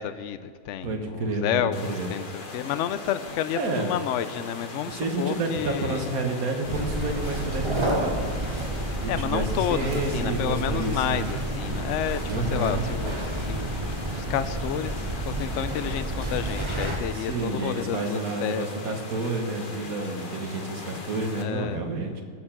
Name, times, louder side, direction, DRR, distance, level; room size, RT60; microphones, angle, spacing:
voice 1, 0.0-6.1 9.1-13.7 14.0-18.7 21.4-21.8, left 10 dB, 65° left, 12 dB, 0.9 m, -30 dB
voice 2, 0.8-2.1 3.6-3.9 4.9-8.1 9.0-11.4 12.2-12.9 17.1-22.2, right 2 dB, 85° right, 4 dB, 1.8 m, -30 dB
sound 1, 1.7-21.4, left 3 dB, 40° left, 1.3 m, -40 dB
sound 2, 6.6-17.0, right 1 dB, 20° right, 1.3 m, -30 dB
19.0 x 6.8 x 5.9 m, 2.2 s
omnidirectional pair, 1.5 m